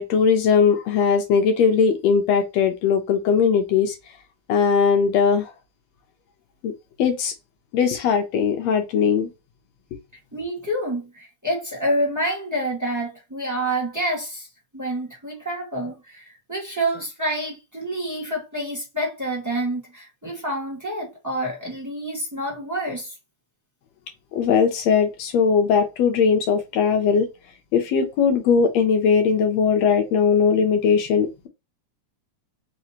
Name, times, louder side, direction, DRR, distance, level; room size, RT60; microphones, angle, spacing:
voice 1, 0.0-4.0 4.5-5.5 6.6-6.7 7.0-7.3 7.7-9.3 24.3-27.3 27.7-31.5, left 6 dB, 70° left, 1.8 m, -19 dB
voice 2, 10.3-14.5 14.7-23.1, right 1 dB, 10° right, 1.2 m, -28 dB
5.0 x 3.0 x 2.8 m
omnidirectional pair, 3.5 m